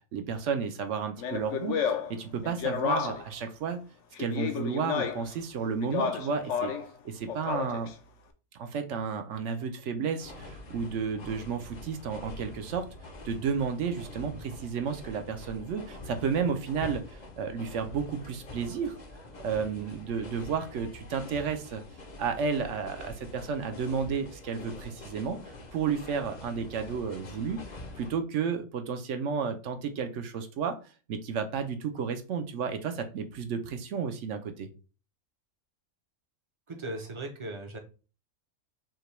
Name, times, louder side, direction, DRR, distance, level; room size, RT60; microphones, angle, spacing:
voice 1, 0.1-1.8 2.1-3.8 4.2-6.7 7.0-7.9 8.6-12.9 13.2-19.0 19.4-21.8 22.2-25.4 25.7-27.6 28.0-30.8 31.1-34.7, right 6 dB, 70° right, 7 dB, 0.9 m, -32 dB
Speech, 1.2-3.4 4.2-5.3 5.8-6.9 7.3-7.9, left 7 dB, 70° left, 0.9 m, -31 dB
sound 1, 10.2-28.1, left 2 dB, 45° left, 0.7 m, -45 dB
voice 2, 36.7-37.8, right 2 dB, 30° right, 3 dB, 0.6 m, -38 dB
5.7 x 2.2 x 3.1 m, 0.35 s
omnidirectional pair, 1.4 m